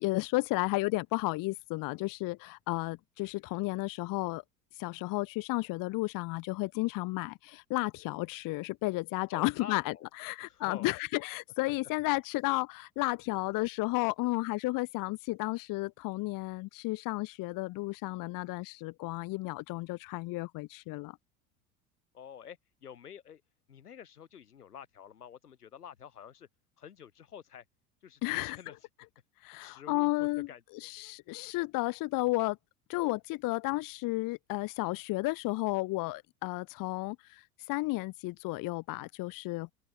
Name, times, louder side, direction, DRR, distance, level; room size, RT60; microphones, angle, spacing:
voice 1, 0.0-4.4 4.8-21.2 28.2-28.6 29.4-30.5 30.8-32.6 32.9-39.7, left 22 dB, 45° left, 0.9 m, -33 dB
voice 2, 9.3-10.1 10.4-10.9 22.1-23.4 23.7-26.5 26.8-27.6 28.0-28.8 29.6-30.9, left 8 dB, 90° left, 3.0 m, -48 dB
open air
hypercardioid pair, 80°, 45 cm